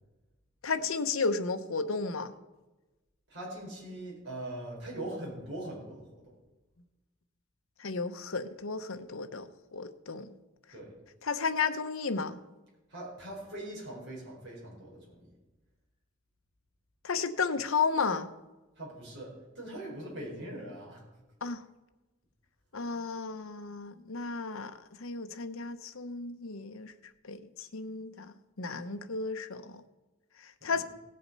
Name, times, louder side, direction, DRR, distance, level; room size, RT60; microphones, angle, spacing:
voice 1, 0.6-2.3 7.8-10.3 11.2-12.4 17.0-18.3 21.4-21.6 22.7-26.9 27.2-29.8 30.4-30.8, left 4 dB, 75° left, 9 dB, 0.9 m, -33 dB
voice 2, 3.3-6.3 10.7-10.9 12.9-15.3 18.8-21.0 30.6-30.8, right 1 dB, 55° right, -4 dB, 4.5 m, -42 dB
17.0 x 7.7 x 5.4 m, 1.1 s
head